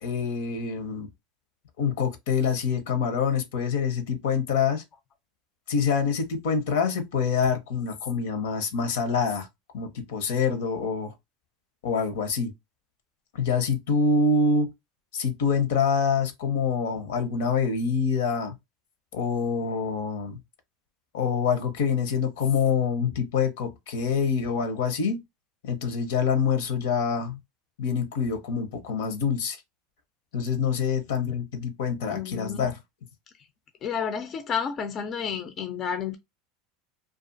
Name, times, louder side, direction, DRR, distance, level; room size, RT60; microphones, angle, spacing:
voice 1, 0.0-1.1 1.8-4.8 5.7-9.5 9.7-11.1 11.8-12.5 13.3-14.7 15.1-18.5 19.1-20.4 21.1-25.2 25.6-27.4 27.8-29.6 30.3-32.8, left 5 dB, 75° left, 0.7 m, -26 dB
voice 2, 32.1-32.7 33.8-36.2, left 7 dB, 40° left, 0.4 m, -31 dB
2.4 x 2.3 x 2.5 m
hypercardioid pair, 95°, 0 cm